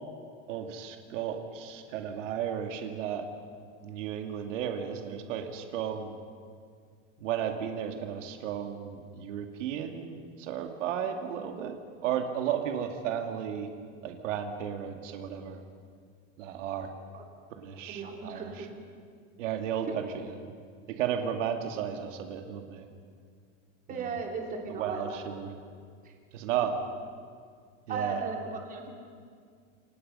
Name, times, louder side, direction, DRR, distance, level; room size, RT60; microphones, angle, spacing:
voice 1, 0.5-3.3 3.8-6.1 7.2-11.8 12.0-13.7 14.0-15.6 16.4-16.9 17.6-18.7 19.4-20.4 20.9-22.9 23.9-24.1 24.7-25.5 26.3-26.8 27.9-28.2, right 8 dB, 90° right, 5 dB, 2.5 m, -34 dB
voice 2, 17.9-18.7 23.9-25.2 26.0-26.1 27.9-28.9, right 4 dB, 25° right, 1 dB, 3.0 m, -36 dB
28.5 x 25.0 x 5.6 m, 2.1 s
supercardioid pair, 165°, 36 cm